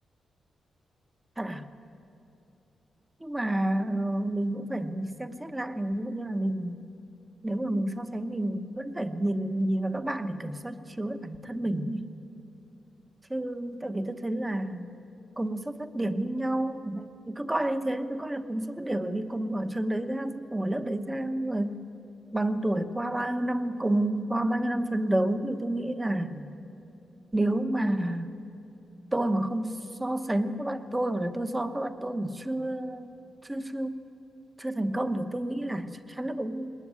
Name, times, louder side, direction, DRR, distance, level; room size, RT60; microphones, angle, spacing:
voice 1, 1.4-1.7 3.2-6.8 7.4-12.1 13.3-14.9 15.4-21.9 22.3-26.5 27.3-28.3 29.1-33.1 33.4-33.9 34.6-36.7, right 1 dB, 10° right, 9 dB, 1.0 m, -30 dB
21.0 x 20.5 x 9.7 m, 2.8 s
wide cardioid pair, 130°, 0 cm